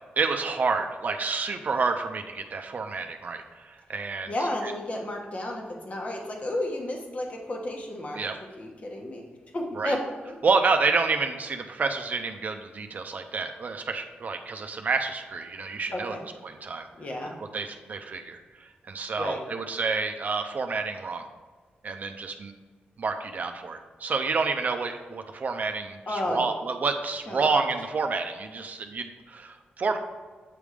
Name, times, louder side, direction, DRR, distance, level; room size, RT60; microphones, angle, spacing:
voice 1, 0.2-4.3 4.6-4.7 8.1-8.3 9.8-9.9 10.4-16.1 16.4-16.9 17.4-21.2 21.8-22.5 23.0-30.0, right 4 dB, 50° right, 6 dB, 0.5 m, -29 dB
voice 2, 4.3-8.2 8.6-9.2 9.5-10.0 10.3-10.4 15.9-16.2 17.0-17.3 19.2-19.4 26.1-26.5 27.3-27.6, left 1 dB, 40° left, 1 dB, 1.2 m, -32 dB
8.4 x 3.5 x 4.9 m, 1.4 s
wide cardioid pair, 115°, 4 cm